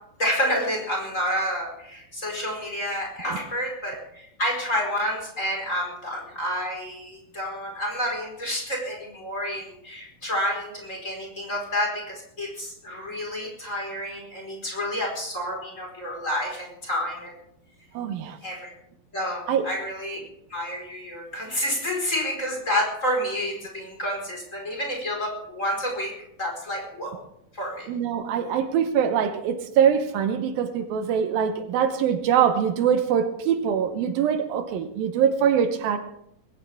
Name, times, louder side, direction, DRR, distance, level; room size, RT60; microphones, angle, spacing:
voice 1, 0.2-17.3 18.4-18.7 19.1-20.2 20.5-26.1 26.4-27.2 27.5-27.9, equal, 20° left, 0 dB, 4.6 m, -29 dB
voice 2, 17.9-18.4 19.5-19.7 27.9-36.0, right 8 dB, 75° right, 8 dB, 2.7 m, -23 dB
20.5 x 17.5 x 3.5 m, 0.76 s
omnidirectional pair, 4.3 m